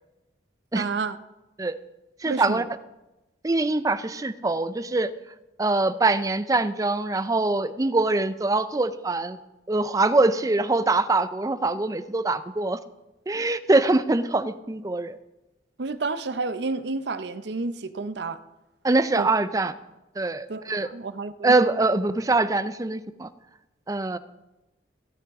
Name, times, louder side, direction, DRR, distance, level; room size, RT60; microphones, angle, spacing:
voice 1, 0.7-1.2 2.2-2.6 15.8-18.4 19.1-19.3 20.5-21.5, right 3 dB, 70° right, 12 dB, 0.6 m, -30 dB
voice 2, 2.2-2.6 3.4-5.1 5.6-9.4 9.7-12.8 13.3-15.2 18.8-19.7 20.2-20.9 21.4-23.3 23.9-24.2, right 2 dB, 20° right, 13 dB, 0.4 m, -23 dB
16.0 x 9.3 x 3.6 m, 1.0 s
head